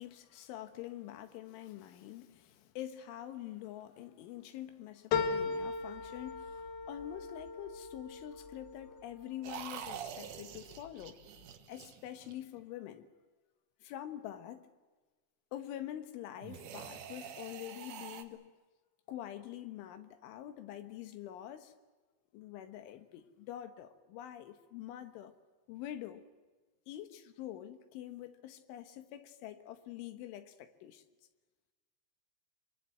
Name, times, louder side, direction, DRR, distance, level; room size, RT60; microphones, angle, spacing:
voice 1, 0.0-11.2 11.7-13.1 13.8-14.7 15.5-18.5 19.1-21.7 22.3-25.3 25.7-26.2 26.9-31.0, left 12 dB, 80° left, 3.8 m, -46 dB
sound 1, 5.1-9.9 10.4-11.1 11.4-11.5, left 5 dB, 60° left, 3.1 m, -38 dB
sound 2, 9.4-12.6 16.4-18.2, right 8 dB, 65° right, 2.1 m, -46 dB
25.0 x 24.0 x 7.7 m
omnidirectional pair, 5.5 m